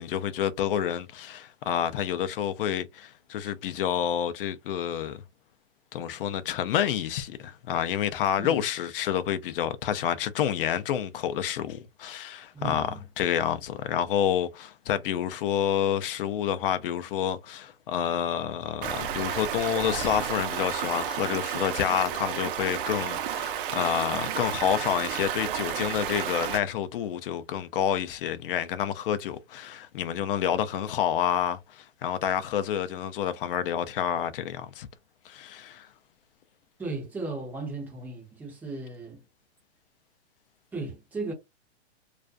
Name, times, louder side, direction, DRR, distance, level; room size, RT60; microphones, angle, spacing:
voice 1, 0.0-5.2 5.9-12.9 13.2-34.9 35.3-35.9, left 9 dB, 55° left, 0.5 m, -28 dB
voice 2, 12.5-13.0 36.8-39.2 40.7-41.3, right 3 dB, 5° right, 0.5 m, -36 dB
Stream, 18.8-26.6, right 9 dB, 50° right, 0.5 m, -31 dB
2.4 x 2.2 x 2.4 m
hypercardioid pair, 145°, 34 cm